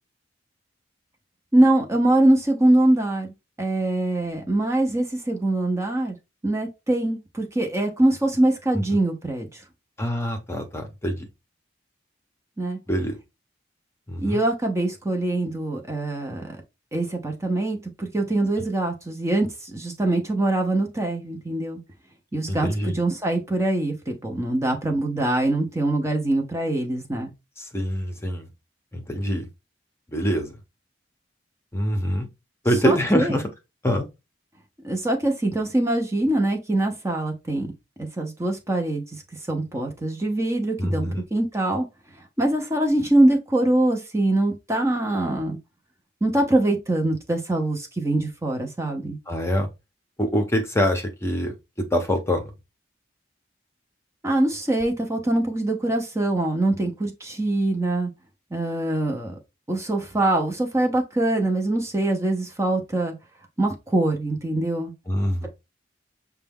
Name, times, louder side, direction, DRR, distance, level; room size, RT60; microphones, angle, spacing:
voice 1, 1.5-3.3 3.6-6.2 6.4-9.6 12.6-12.8 14.2-16.5 16.9-21.8 22.3-27.3 32.8-33.4 34.8-37.7 38.0-39.2 39.5-41.9 42.2-45.6 46.2-49.2 54.2-58.1 58.5-59.4 59.7-63.1 63.6-64.9, right 1 dB, 15° right, 0.7 m, -23 dB
voice 2, 10.0-11.3 12.9-13.2 14.1-14.4 22.5-23.0 27.6-28.5 28.9-29.5 30.1-30.5 31.7-32.3 32.6-33.4 33.8-34.1 40.8-41.2 49.3-49.7 50.2-51.5 51.9-52.5 65.1-65.5, equal, 15° left, 0.8 m, -24 dB
6.6 x 2.3 x 3.5 m
head